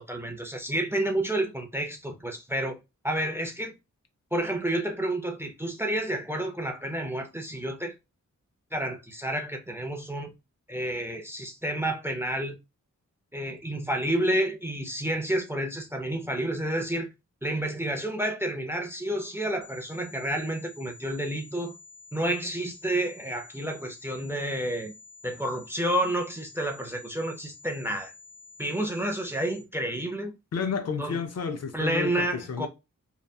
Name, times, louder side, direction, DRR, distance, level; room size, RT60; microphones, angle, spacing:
voice 1, 0.0-2.8 3.0-3.7 4.3-7.9 8.7-10.3 10.7-12.6 13.3-17.1 17.4-21.7 22.1-24.9 25.2-28.1 28.6-30.3 31.0-31.2 31.7-32.7, right 1 dB, 10° right, 0.4 m, -30 dB
sound 1, 19.6-29.6, left 4 dB, 80° right, 0.6 m, -50 dB
voice 2, 30.5-32.7, left 6 dB, 55° left, 0.4 m, -31 dB
2.7 x 2.2 x 2.2 m
wide cardioid pair, 110°, 31 cm